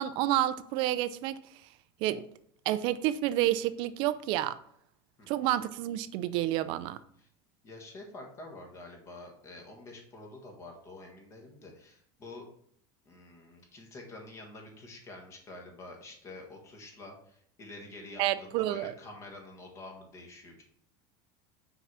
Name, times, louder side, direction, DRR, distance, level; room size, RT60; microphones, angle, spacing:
voice 1, 0.0-1.4 2.0-2.2 2.7-4.6 5.3-7.0 18.2-18.9, right 13 dB, 45° right, 0.4 m, -29 dB
voice 2, 7.6-12.4 13.0-20.6, left 2 dB, 25° left, 1.6 m, -48 dB
5.8 x 4.8 x 5.5 m
cardioid pair, 170°, 12 cm